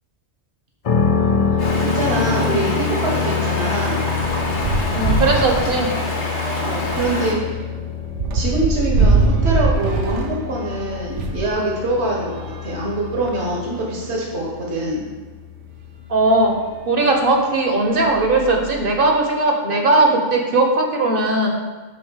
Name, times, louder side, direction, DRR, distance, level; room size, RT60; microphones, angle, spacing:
sound 1, 0.8-16.7, left 6 dB, 60° left, 0.3 m, -26 dB
sound 2, 1.1-1.2 1.6-1.8 2.0-11.5 12.2-13.6 14.3-14.4 14.6-14.7 16.4-16.5 17.2-17.4 17.8-19.1, right 3 dB, 90° right, 1.1 m, -24 dB
voice 1, 1.5-4.0 6.6-7.6 8.3-12.3 12.6-15.0, right 1 dB, 70° right, -3 dB, 1.7 m, -24 dB
Stream, 1.6-7.3, left 1 dB, 80° left, 1.7 m, -26 dB
voice 2, 4.9-5.9 16.1-16.5 16.9-21.5, right 2 dB, 55° right, 2 dB, 1.2 m, -18 dB
6.4 x 4.4 x 6.3 m, 1.3 s
omnidirectional pair, 1.2 m